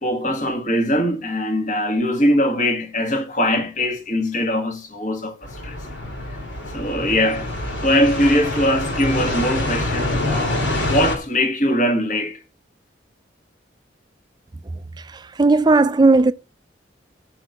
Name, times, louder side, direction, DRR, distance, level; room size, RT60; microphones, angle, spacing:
voice 1, 0.0-5.8 6.7-7.5 7.8-12.4, equal, 40° left, 1.7 m, -21 dB
sound 1, 5.4-11.2, left 2 dB, 80° left, 2.9 m, -25 dB
voice 2, 15.4-16.3, right 3 dB, 20° right, 0.4 m, -14 dB
6.1 x 6.0 x 6.6 m
head